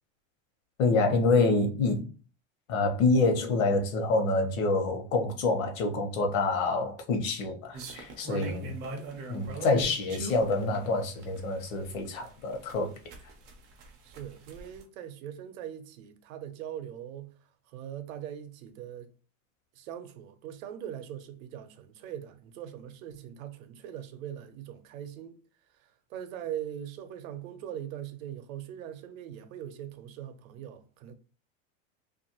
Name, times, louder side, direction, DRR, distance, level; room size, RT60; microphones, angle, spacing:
voice 1, 0.8-2.0 2.7-8.7 9.3-12.9, left 3 dB, 65° left, 0.9 m, -27 dB
sound 1, 7.7-14.8, right 3 dB, 25° right, 0.4 m, -41 dB
voice 2, 14.0-17.3 17.7-19.1 19.8-25.3 26.1-31.1, right 10 dB, 75° right, 0.7 m, -41 dB
2.6 x 2.5 x 2.8 m
supercardioid pair, 165°, 41 cm